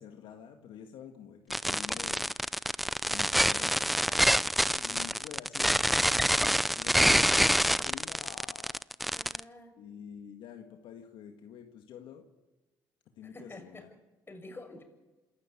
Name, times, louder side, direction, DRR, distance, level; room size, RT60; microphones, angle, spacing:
voice 1, 0.0-2.4 3.0-3.9 4.7-6.2 6.8-8.8 9.8-12.3 13.2-13.9, left 8 dB, 75° left, 5 dB, 1.8 m, -48 dB
sound 1, 1.5-9.4, equal, ahead, 0.6 m, -26 dB
voice 2, 4.0-4.5 9.1-9.7 13.2-13.9 14.3-14.8, left 2 dB, 25° left, 6 dB, 6.6 m, -48 dB
27.5 x 13.0 x 8.8 m, 1.1 s
supercardioid pair, 80°, 9 cm